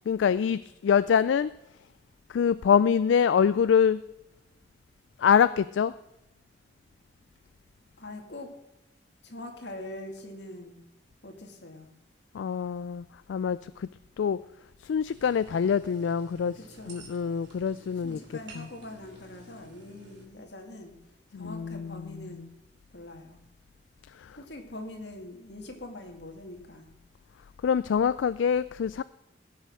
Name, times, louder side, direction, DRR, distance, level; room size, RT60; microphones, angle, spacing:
voice 1, 0.1-1.5 2.3-4.0 5.2-5.9 12.3-13.9 14.2-14.4 14.8-16.6 16.9-18.2 18.5-18.7 21.3-22.5 24.1-24.4 27.6-29.0, left 7 dB, 85° left, 15 dB, 0.3 m, -25 dB
voice 2, 8.0-8.5 9.2-10.8 11.2-11.9 16.5-17.1 18.0-20.9 21.3-22.5 22.9-23.4 24.4-26.9, left 1 dB, 70° left, 3 dB, 2.1 m, -43 dB
sound 1, 15.1-20.3, right 3 dB, 85° right, 2.9 m, -52 dB
16.0 x 6.8 x 6.4 m, 0.94 s
head